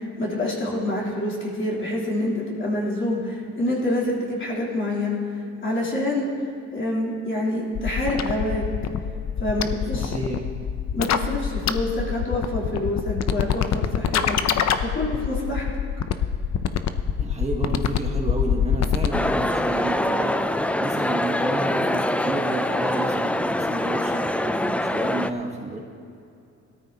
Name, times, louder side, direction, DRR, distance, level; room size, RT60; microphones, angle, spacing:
voice 1, 0.0-6.3 6.7-8.7 9.4-10.2 10.9-14.5 14.8-15.6, left 1 dB, 40° left, -5 dB, 3.6 m, -27 dB
sound 1, 7.8-19.3, left 8 dB, 60° left, 0.7 m, -24 dB
voice 2, 9.9-10.5 17.2-25.8, right 2 dB, 20° right, 0 dB, 1.5 m, -31 dB
sound 2, 19.1-25.3, left 1 dB, 5° left, 0.4 m, -24 dB
18.0 x 13.0 x 2.9 m, 2.6 s
cardioid pair, 90°, 30 cm